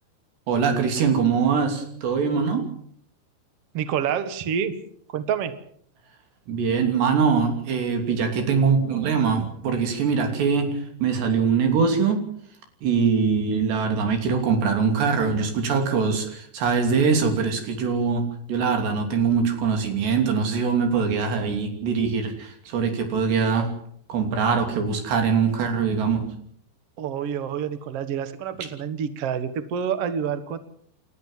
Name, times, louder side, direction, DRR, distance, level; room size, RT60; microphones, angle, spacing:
voice 1, 0.5-2.7 6.5-12.2 12.8-23.7 24.1-26.3, right 5 dB, 75° right, 5 dB, 5.2 m, -23 dB
voice 2, 3.7-4.7 5.1-5.5 27.0-30.6, right 8 dB, 60° right, 11 dB, 1.7 m, -27 dB
29.5 x 13.0 x 7.5 m, 0.66 s
omnidirectional pair, 4.9 m